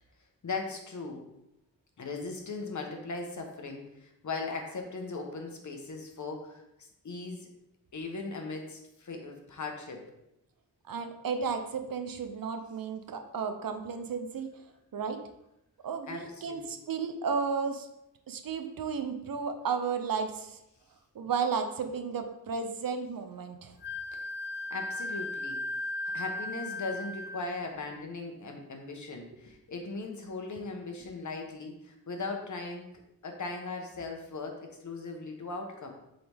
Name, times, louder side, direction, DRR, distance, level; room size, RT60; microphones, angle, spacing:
voice 1, 0.4-1.2 2.0-6.6 7.0-7.5 7.9-10.0 16.1-16.6 24.7-25.6 26.1-32.9 33.2-35.9, left 3 dB, 55° left, 3 dB, 1.1 m, -38 dB
voice 2, 10.9-14.6 14.9-15.2 15.8-17.9 18.3-20.6 21.1-23.8, right 5 dB, 75° right, 7 dB, 0.7 m, -33 dB
Wind instrument woodwind instrument, 23.8-27.5, left 2 dB, 35° left, 0.4 m, -36 dB
7.7 x 3.9 x 3.5 m, 0.85 s
wide cardioid pair, 115°, 34 cm